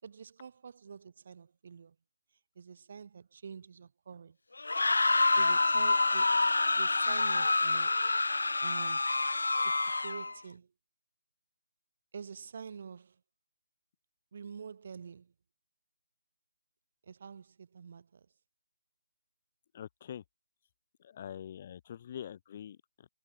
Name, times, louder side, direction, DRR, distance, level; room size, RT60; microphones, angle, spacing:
voice 1, 0.0-2.0 2.6-4.4 5.1-8.0 8.6-9.1 9.6-10.7 12.1-13.2 14.3-15.3 17.0-18.3, right 6 dB, 30° right, 4.0 m, -47 dB
sound 1, 4.6-10.3, left 3 dB, 80° left, 0.6 m, -27 dB
voice 2, 19.7-20.2 21.0-23.1, left 9 dB, 20° left, 1.6 m, -44 dB
hypercardioid pair, 175°, 0 cm